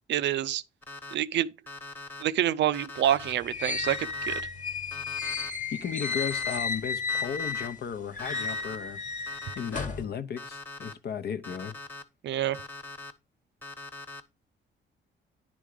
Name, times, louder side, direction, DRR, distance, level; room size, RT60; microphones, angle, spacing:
voice 1, 0.1-0.6 1.1-1.5 2.2-4.4 12.2-12.6, right 11 dB, 65° right, 0.5 m, -27 dB
Alarm, 0.8-1.1 1.7-2.2 2.7-3.3 3.8-4.4 4.9-5.5 6.0-6.6 7.1-7.7 8.2-8.8 9.3-9.9 10.4-10.9 11.4-12.0 12.5-13.1 13.6-14.2, left 3 dB, 10° left, 1.2 m, -42 dB
sound 1, 3.1-7.8 8.1-10.1, left 4 dB, 40° left, 1.2 m, -33 dB
voice 2, 5.7-9.0 9.5-11.7, left 7 dB, 55° left, 0.8 m, -35 dB
10.0 x 3.5 x 4.9 m
cardioid pair, 90°, 20 cm